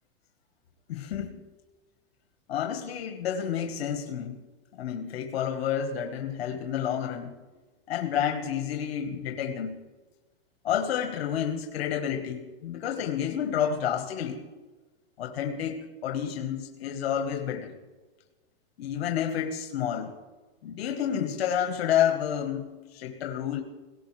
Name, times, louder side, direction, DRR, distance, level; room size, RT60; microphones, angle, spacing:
voice 1, 0.9-1.4 2.5-4.4 4.7-7.3 7.9-9.8 10.6-14.4 15.2-17.7 18.8-20.1 20.6-23.6, left 9 dB, 85° left, 5 dB, 1.5 m, -30 dB
18.0 x 17.5 x 3.3 m, 1.2 s
supercardioid pair, 150°, 30 cm